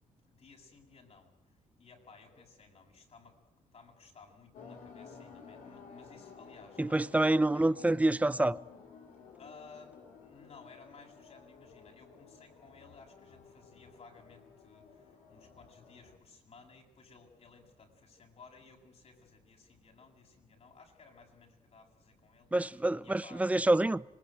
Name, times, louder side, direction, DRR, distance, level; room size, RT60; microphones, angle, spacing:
voice 1, 0.3-1.3 1.8-3.4 3.7-7.0 7.5-7.8 9.4-10.0 10.2-22.5 23.0-23.5, left 4 dB, 50° left, 7.9 m, -57 dB
sound 1, 4.5-16.2, left 5 dB, 80° left, 4.6 m, -54 dB
voice 2, 6.8-8.6 22.5-24.0, right 2 dB, 10° right, 0.9 m, -27 dB
26.0 x 20.5 x 9.1 m
cardioid pair, 80°, 14 cm